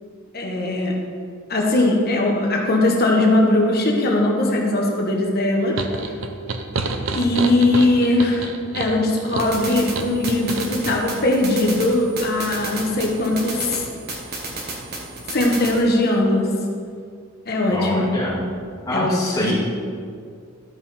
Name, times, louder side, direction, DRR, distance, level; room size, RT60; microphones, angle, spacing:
voice 1, 0.3-1.0 1.5-5.8 6.0-6.1 7.1-13.8 15.3-16.5 17.5-18.2 18.9-19.5, left 2 dB, 45° left, 0 dB, 1.1 m, -20 dB
sound 1, 5.8-11.0, right 3 dB, 65° right, 0.6 m, -28 dB
sound 2, 9.4-15.8, right 2 dB, 45° right, 1.4 m, -32 dB
voice 2, 17.7-18.4 18.9-19.5, left 1 dB, 15° left, -8 dB, 2.4 m, -25 dB
12.5 x 5.5 x 4.3 m, 2.2 s
head